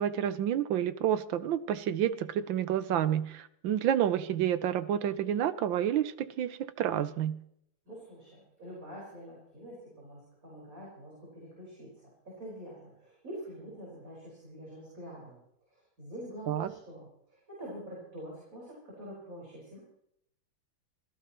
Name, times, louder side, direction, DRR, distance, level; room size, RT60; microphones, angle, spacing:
voice 1, 0.0-7.4 16.5-16.7, right 10 dB, 75° right, 13 dB, 1.5 m, -29 dB
voice 2, 7.9-15.4 15.7-19.8, equal, 40° right, -4 dB, 5.6 m, -46 dB
26.0 x 16.5 x 3.1 m, 0.73 s
omnidirectional pair, 2.2 m